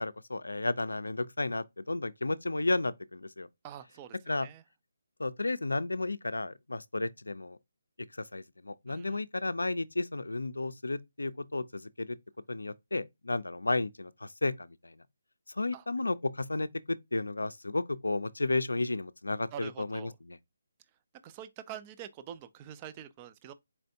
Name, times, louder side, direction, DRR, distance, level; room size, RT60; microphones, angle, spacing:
voice 1, 0.0-3.5 4.3-4.5 5.2-7.6 8.1-12.2 12.5-15.0 15.5-20.4, left 2 dB, 90° left, 0.4 m, -33 dB
voice 2, 3.6-4.1 4.4-4.6 8.9-9.2 15.7-15.8 19.5-20.1 21.2-23.5, right 10 dB, 25° right, 0.4 m, -45 dB
4.4 x 3.3 x 2.7 m
figure-of-eight pair, 155°, 0 cm